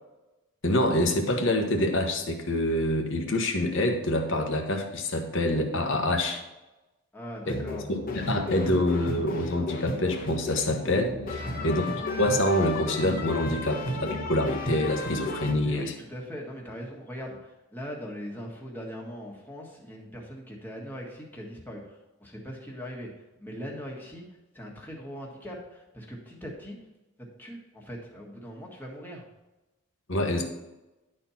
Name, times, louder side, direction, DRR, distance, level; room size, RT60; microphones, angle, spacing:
voice 1, 0.6-6.4 7.5-7.6 7.9-11.8 12.2-15.9 30.1-30.4, left 1 dB, 55° left, 4 dB, 1.2 m, -26 dB
voice 2, 7.1-7.9 11.4-11.8 15.6-23.1 23.4-24.2 24.5-26.8 27.2-29.3, equal, 10° left, -2 dB, 1.6 m, -40 dB
sound 1, 7.5-15.5, left 2 dB, 40° left, 1.2 m, -33 dB
11.0 x 4.4 x 5.7 m, 1.0 s
head